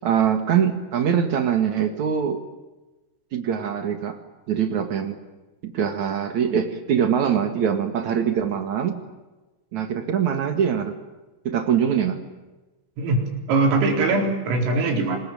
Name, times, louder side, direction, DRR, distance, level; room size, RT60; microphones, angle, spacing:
voice 1, 0.0-2.4 3.3-4.2 4.5-5.2 5.6-9.0 9.7-11.0 11.4-12.2, right 8 dB, 55° right, 7 dB, 2.1 m, -23 dB
voice 2, 13.0-15.2, right 3 dB, 85° right, 2 dB, 6.9 m, -21 dB
26.0 x 21.0 x 8.9 m, 1.1 s
omnidirectional pair, 5.8 m